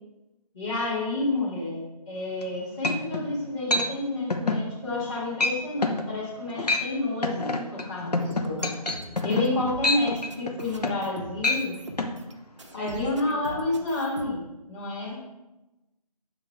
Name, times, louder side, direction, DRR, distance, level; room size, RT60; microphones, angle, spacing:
voice 1, 0.5-8.7 9.2-11.7 12.7-15.2, left 2 dB, 35° left, -11 dB, 2.2 m, -30 dB
sound 1, 2.4-2.5 2.8-3.3 3.7-3.9 4.3-4.6 5.0-5.1 5.4-5.6 5.8-6.0 6.5-6.9 7.2-11.1 11.4-11.6 12.0-12.1, left 2 dB, 75° left, 1.0 m, -26 dB
sound 2, 8.2-12.3 12.6-14.2, right 1 dB, 45° right, 0.8 m, -42 dB
voice 2, 12.8-13.8 15.0-15.2, right 2 dB, 15° right, -7 dB, 1.2 m, -39 dB
7.8 x 3.9 x 4.7 m, 1.0 s
figure-of-eight pair, 175°, 21 cm